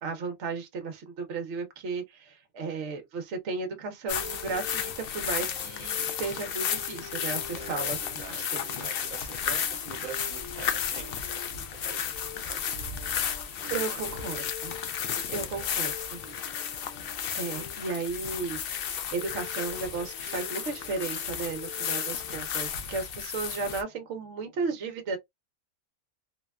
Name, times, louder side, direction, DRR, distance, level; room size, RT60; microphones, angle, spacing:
voice 1, 0.0-8.7 13.7-14.7 15.3-16.2 17.3-25.2, right 4 dB, 65° right, 1.0 m, -34 dB
sound 1, 4.1-23.8, left 8 dB, 65° left, 0.6 m, -33 dB
sound 2, 4.2-22.7, left 8 dB, 85° left, 1.0 m, -48 dB
voice 2, 7.5-13.2 13.6-13.9 14.2-14.3 15.1-15.8 16.2-16.6, right 9 dB, 90° right, 1.1 m, -46 dB
2.8 x 2.2 x 2.3 m
omnidirectional pair, 1.4 m